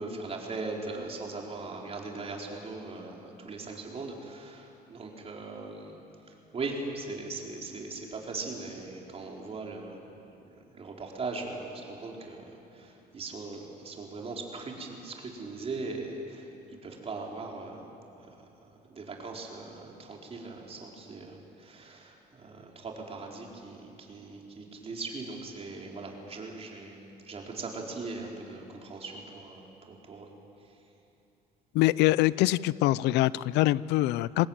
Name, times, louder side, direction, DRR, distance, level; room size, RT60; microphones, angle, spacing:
voice 1, 0.0-6.0 6.5-10.0 10.7-17.8 18.4-30.3, right 3 dB, 35° right, -1 dB, 4.8 m, -39 dB
voice 2, 31.7-34.5, left 17 dB, 85° left, 20 dB, 0.5 m, -24 dB
25.5 x 19.5 x 9.1 m, 2.8 s
cardioid pair, 110°, 17 cm